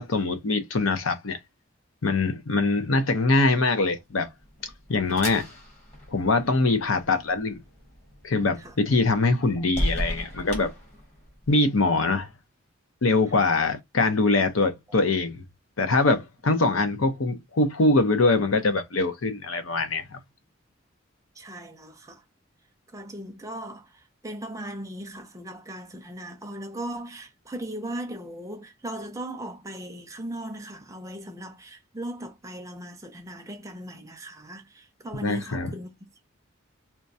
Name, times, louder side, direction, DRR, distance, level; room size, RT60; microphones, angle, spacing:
voice 1, 0.0-1.4 2.0-4.3 4.6-5.5 6.1-7.6 8.2-10.7 11.5-12.3 13.0-15.4 15.8-20.2 35.2-35.7, left 3 dB, 80° left, 0.7 m, -23 dB
sound 1, 4.1-11.5, equal, 35° left, 1.3 m, -36 dB
voice 2, 21.4-22.2 22.9-36.0, right 1 dB, 15° right, 0.5 m, -38 dB
4.4 x 2.3 x 2.6 m
head